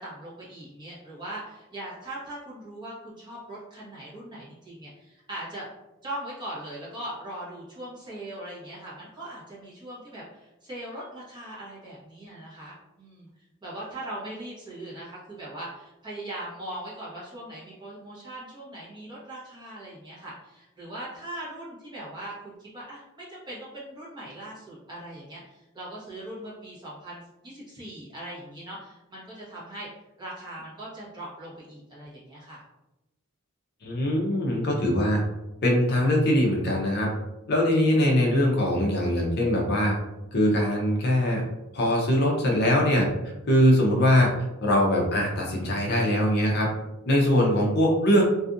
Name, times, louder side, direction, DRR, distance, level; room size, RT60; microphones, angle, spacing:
voice 1, 0.0-5.7 6.0-13.3 13.6-29.9 30.2-32.6, right 1 dB, 20° right, -7 dB, 0.9 m, -40 dB
voice 2, 33.8-35.2 35.6-37.1 37.5-40.0 40.3-41.4 41.7-43.1 43.5-44.3 44.6-46.7 47.1-48.2, left 1 dB, 50° left, -1 dB, 0.5 m, -22 dB
2.6 x 2.3 x 2.5 m, 0.98 s
head